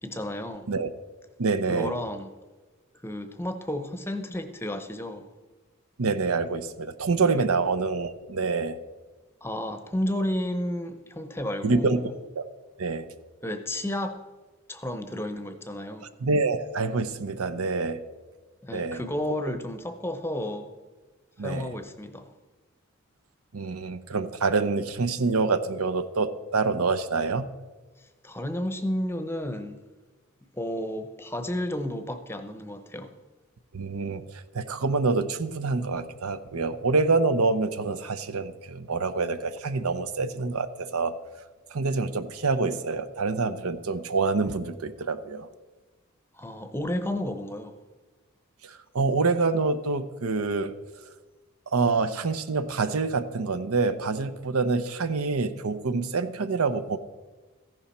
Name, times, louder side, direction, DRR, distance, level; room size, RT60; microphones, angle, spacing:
voice 1, 0.0-0.7 1.7-2.3 3.0-5.3 7.3-7.4 9.4-12.2 13.4-14.2 14.7-16.1 18.6-20.7 21.4-22.3 28.0-29.8 30.5-33.1 46.3-47.8, left 1 dB, 10° left, 9 dB, 0.7 m, -32 dB
voice 2, 1.4-1.9 6.0-8.8 11.6-12.0 12.3-12.4 12.8-13.1 16.2-18.0 18.7-19.0 21.4-21.7 23.5-27.5 33.7-41.1 41.7-45.5 48.6-50.8 51.7-57.0, right 4 dB, 85° right, 12 dB, 0.7 m, -26 dB
14.0 x 11.0 x 4.3 m, 1.2 s
head